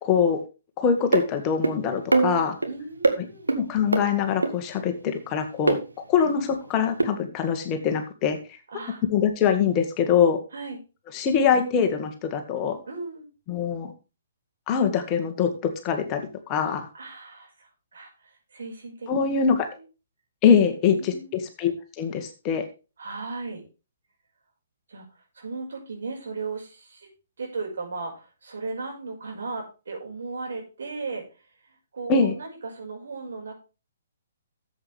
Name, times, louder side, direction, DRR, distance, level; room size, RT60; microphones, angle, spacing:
voice 1, 0.0-0.4 0.8-2.6 3.5-5.8 6.1-8.6 9.1-10.4 11.1-12.8 13.5-13.9 14.7-15.5 15.8-16.9 19.1-19.7 20.4-22.6 32.1-32.3, left 7 dB, 30° left, 6 dB, 1.8 m, -23 dB
sound 1, 1.1-1.3 1.6-1.7 2.1-2.7 3.0-3.2 3.5-3.6 3.9-4.0 4.4-4.5 5.7-5.8 7.0-7.1, right 3 dB, 85° right, 1.8 m, -21 dB
voice 2, 2.7-3.5 6.2-6.3 8.7-9.0 10.5-10.8 12.9-13.3 16.9-19.4 21.0-21.4 23.0-23.6 24.9-27.1 27.4-33.5, right 3 dB, 65° right, 0 dB, 5.5 m, -36 dB
13.5 x 8.0 x 3.4 m, 0.31 s
figure-of-eight pair, 125°, 0 cm